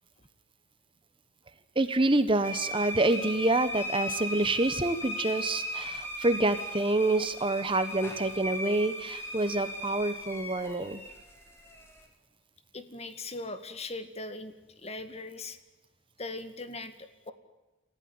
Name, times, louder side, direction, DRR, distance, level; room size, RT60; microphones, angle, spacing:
voice 1, 1.7-11.0, right 2 dB, 25° right, 11 dB, 1.2 m, -27 dB
sound 1, 2.4-12.0, equal, 15° left, 4.8 m, -37 dB
voice 2, 12.7-15.6 16.2-17.3, left 2 dB, 30° left, 10 dB, 2.0 m, -40 dB
28.5 x 15.5 x 9.5 m, 1.1 s
head